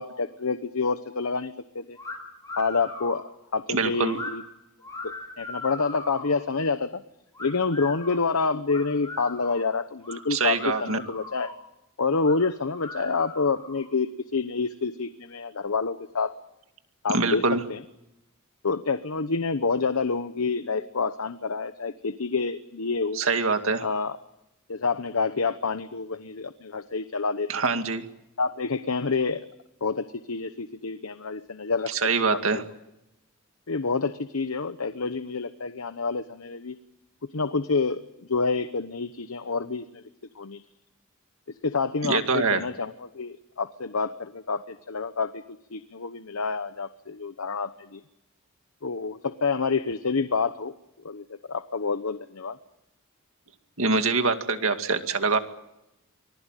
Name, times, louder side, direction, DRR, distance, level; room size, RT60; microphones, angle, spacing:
voice 1, 0.0-2.0 2.6-3.2 3.5-4.4 5.0-7.0 7.4-11.5 12.0-16.3 17.0-17.8 18.6-23.2 23.8-24.2 24.7-27.6 28.4-29.5 29.8-31.9 32.2-32.6 33.7-36.7 37.3-38.0 38.3-40.0 40.4-40.6 41.6-45.4 45.7-48.0 48.8-50.7 51.0-52.6, left 4 dB, 80° left, 11 dB, 1.0 m, -28 dB
sound 1, 2.0-2.2 2.4-3.2 4.0-4.3 4.8-6.4 7.3-8.2 8.7-9.6 10.0-10.2 10.5-11.6 12.1-12.3 12.7-13.8, left 2 dB, 15° left, 7.8 m, -39 dB
voice 2, 3.7-4.2 10.3-11.0 17.1-17.6 23.2-23.9 27.5-28.1 31.9-32.6 42.0-42.6 53.8-55.4, right 4 dB, 65° right, 7 dB, 2.2 m, -24 dB
25.0 x 19.5 x 9.1 m, 0.87 s
head